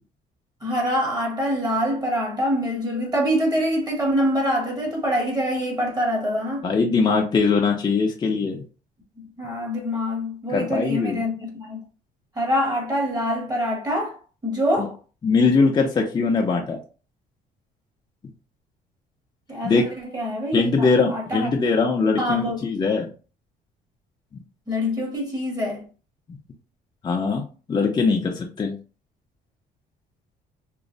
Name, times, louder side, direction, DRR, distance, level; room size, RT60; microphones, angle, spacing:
voice 1, 0.6-6.7 9.2-11.8 12.4-14.2 14.4-15.0 19.5-19.8 20.1-21.5 22.2-22.8 24.7-25.8, equal, 25° right, 0.9 m, -25 dB
voice 2, 6.6-8.6 10.5-11.2 14.8-14.9 15.2-16.8 19.6-19.8 20.5-23.1 27.0-28.7, left 4 dB, 25° left, 0.5 m, -21 dB
3.0 x 2.0 x 2.5 m
cardioid pair, 110°, 17 cm